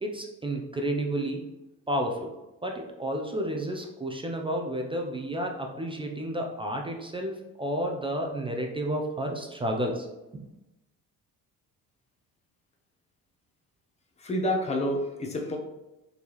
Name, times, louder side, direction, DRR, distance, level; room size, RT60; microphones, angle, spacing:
voice 1, 0.0-1.5 1.9-2.3 2.6-10.1 10.3-10.4, right 1 dB, 15° right, 2 dB, 0.4 m, -31 dB
voice 2, 14.2-15.6, left 1 dB, 20° left, 2 dB, 0.7 m, -28 dB
4.4 x 3.3 x 2.9 m, 0.98 s
cardioid pair, 130°, 35 cm